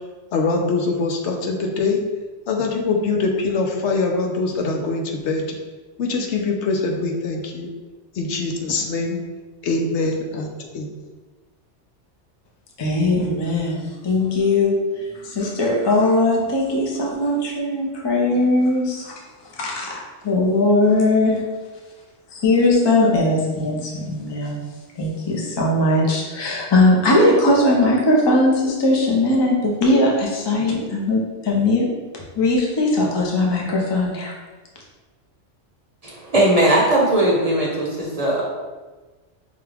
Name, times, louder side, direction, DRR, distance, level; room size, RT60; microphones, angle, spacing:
voice 1, 0.3-2.0 2.5-5.6 6.0-7.7 8.1-9.2 9.6-10.5 10.7-10.9, left 3 dB, 75° left, 2 dB, 0.9 m, -23 dB
voice 2, 12.8-19.1 19.6-20.0 20.2-21.4 22.3-24.6 25.0-31.9 32.4-34.3, left 2 dB, 30° left, -2 dB, 0.5 m, -19 dB
voice 3, 36.0-38.4, right 1 dB, 35° right, -4 dB, 0.8 m, -18 dB
5.3 x 2.3 x 3.4 m, 1.3 s
omnidirectional pair, 1.2 m